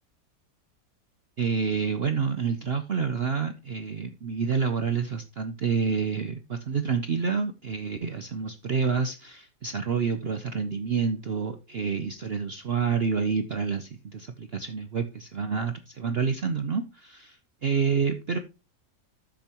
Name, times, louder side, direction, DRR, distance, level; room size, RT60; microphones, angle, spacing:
voice 1, 1.4-17.3 17.6-18.4, right 5 dB, 55° right, 9 dB, 0.7 m, -28 dB
10.5 x 7.6 x 2.9 m, 0.28 s
omnidirectional pair, 1.8 m